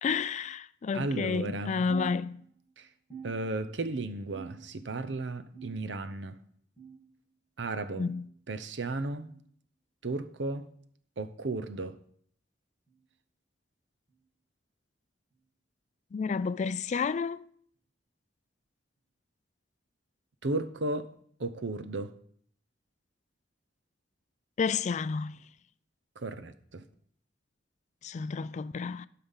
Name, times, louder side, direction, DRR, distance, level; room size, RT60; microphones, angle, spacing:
voice 1, 0.0-2.4 7.9-8.3 16.1-17.4 24.6-25.4 28.0-29.1, left 5 dB, 40° left, 0.3 m, -31 dB
voice 2, 0.9-1.8 2.8-2.9 3.2-6.4 7.6-8.1 8.5-9.3 10.0-10.7 11.2-12.0 20.4-21.1 21.4-22.1 26.2-26.8, right 2 dB, 70° right, 0.7 m, -34 dB
sound 1, 1.9-2.7 3.1-3.9 4.3-4.9 5.5-6.1 6.8-7.1 8.0-8.2 9.2-9.4 10.4-10.6 11.6-11.8 12.9-13.0 14.1-14.3 15.3-15.4 16.5-16.6, right 6 dB, 30° right, 5.5 m, -47 dB
12.5 x 5.7 x 5.6 m
head